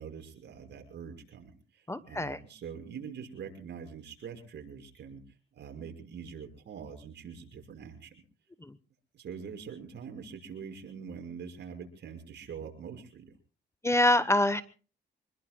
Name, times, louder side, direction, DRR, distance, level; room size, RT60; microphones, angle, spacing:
voice 1, 0.0-5.2 5.5-8.1 9.1-13.4, right 6 dB, 60° right, 4 dB, 6.0 m, -44 dB
voice 2, 1.9-2.4 13.8-14.6, left 1 dB, 15° left, 14 dB, 1.0 m, -25 dB
26.5 x 21.0 x 2.3 m, 0.36 s
cardioid pair, 90°, 20 cm